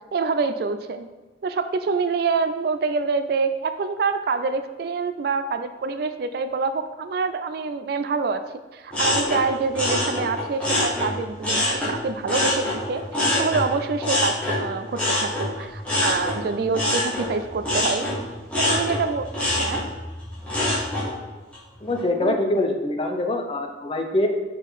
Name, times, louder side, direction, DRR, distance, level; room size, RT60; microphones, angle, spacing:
voice 1, 0.1-1.1 1.4-8.4 8.7-18.1 18.6-19.3 19.6-19.8 22.2-22.4, right 4 dB, 55° right, 10 dB, 0.3 m, -26 dB
sound 1, 8.9-11.9 12.3-21.1 21.5-22.0, left 1 dB, 5° left, 1.4 m, -25 dB
voice 2, 21.8-24.3, left 1 dB, 30° left, 3 dB, 0.5 m, -24 dB
6.2 x 3.9 x 4.0 m, 1.2 s
head